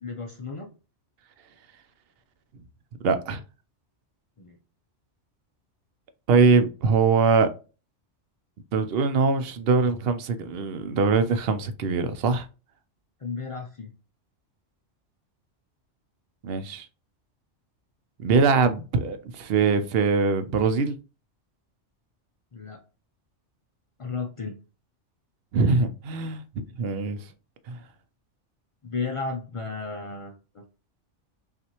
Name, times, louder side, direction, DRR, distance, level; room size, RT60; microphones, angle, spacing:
voice 1, 0.0-0.7 4.4-4.6 13.2-13.9 22.5-22.8 24.0-24.6 28.8-30.6, left 4 dB, 60° left, 0.3 m, -34 dB
voice 2, 3.0-3.4 6.3-7.5 8.7-12.5 16.4-16.9 18.2-21.0 25.5-26.4 26.8-27.2 27.7-27.8, right 4 dB, 60° right, 0.7 m, -22 dB
5.6 x 2.5 x 2.9 m
omnidirectional pair, 1.2 m